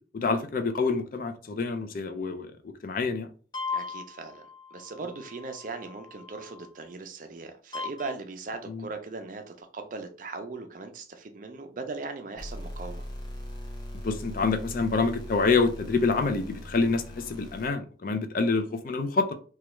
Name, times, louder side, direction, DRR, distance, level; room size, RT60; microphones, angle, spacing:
voice 1, 0.1-2.5 2.8-3.3 8.7-8.9 14.0-19.3, left 4 dB, 50° left, 7 dB, 0.4 m, -27 dB
sound 1, 3.5-6.9 7.7-8.1 12.4-17.7, left 2 dB, 25° left, 0.8 m, -39 dB
voice 2, 3.7-4.5 4.7-13.0, right 3 dB, 45° right, 6 dB, 0.5 m, -39 dB
3.1 x 2.3 x 3.0 m, 0.40 s
head